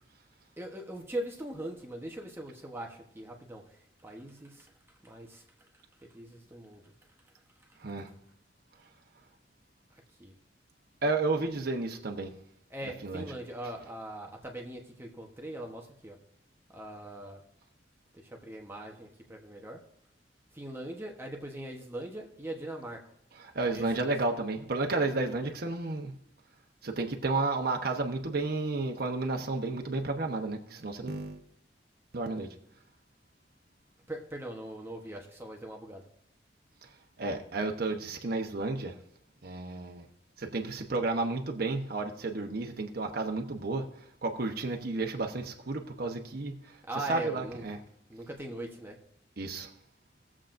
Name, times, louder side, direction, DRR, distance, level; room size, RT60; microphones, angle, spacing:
voice 1, 0.6-3.6 4.0-4.7 5.0-5.4 6.0-6.9 10.2-10.3 12.7-16.2 16.7-17.4 18.1-19.8 20.5-23.0 23.7-24.1 34.1-36.0 46.9-47.6 48.1-49.0, right 1 dB, 15° right, 1 dB, 1.0 m, -41 dB
voice 2, 11.0-12.3 13.0-13.3 23.3-26.1 26.8-31.4 32.1-32.6 36.8-36.9 37.2-39.0 39.4-40.1 40.4-46.8 47.1-47.8 49.4-49.7, right 3 dB, 55° right, 3 dB, 1.0 m, -32 dB
19.0 x 7.4 x 2.6 m, 0.75 s
head